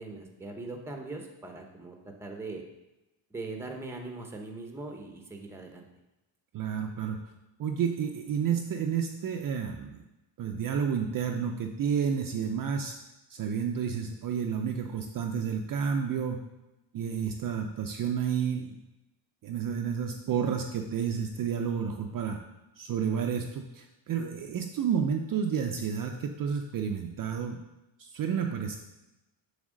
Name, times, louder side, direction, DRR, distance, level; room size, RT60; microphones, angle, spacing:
voice 1, 0.0-2.6 3.3-5.8, right 2 dB, 5° right, 2 dB, 0.7 m, -40 dB
voice 2, 6.5-7.2 7.6-10.0 10.4-12.9 13.3-16.4 16.9-18.8 19.4-22.4 22.8-27.6 28.0-28.8, right 7 dB, 45° right, 3 dB, 0.5 m, -30 dB
7.3 x 3.5 x 6.3 m, 0.97 s
cardioid pair, 160°, 49 cm